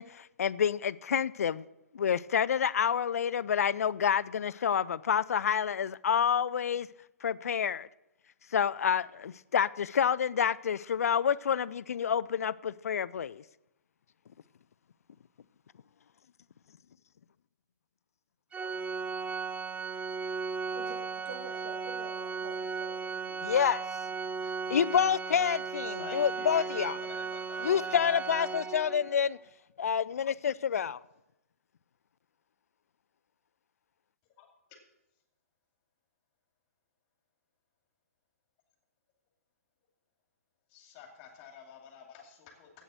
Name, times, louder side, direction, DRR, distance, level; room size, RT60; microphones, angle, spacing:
voice 1, 0.0-1.6 1.9-6.9 7.2-7.9 8.5-13.4 23.4-23.8 24.7-26.9 27.6-29.4 29.8-31.0, left 8 dB, 75° left, 0.3 m, -28 dB
Organ, 18.5-29.2, right 5 dB, 15° right, 0.4 m, -36 dB
voice 2, 20.7-23.5, right 4 dB, 50° right, 2.5 m, -47 dB
voice 3, 25.8-28.2 34.4-34.5 40.7-42.8, left 7 dB, 35° left, 2.5 m, -50 dB
8.3 x 7.8 x 7.5 m
hypercardioid pair, 130°, 8 cm